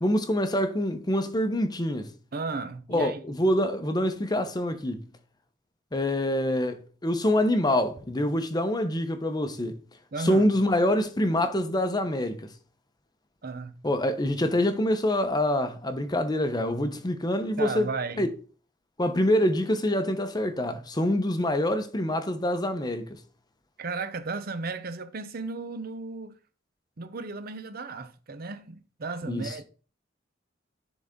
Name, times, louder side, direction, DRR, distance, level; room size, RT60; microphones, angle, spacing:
voice 1, 0.0-2.1 2.9-5.0 5.9-9.8 10.2-12.5 13.8-17.9 18.2-18.3 19.0-23.1 29.3-29.6, left 1 dB, 20° left, 0.8 m, -26 dB
voice 2, 2.3-3.2 10.1-10.5 13.4-13.7 17.6-18.3 23.8-26.3 27.0-29.6, right 3 dB, 50° right, 0.7 m, -34 dB
10.5 x 3.9 x 3.7 m
head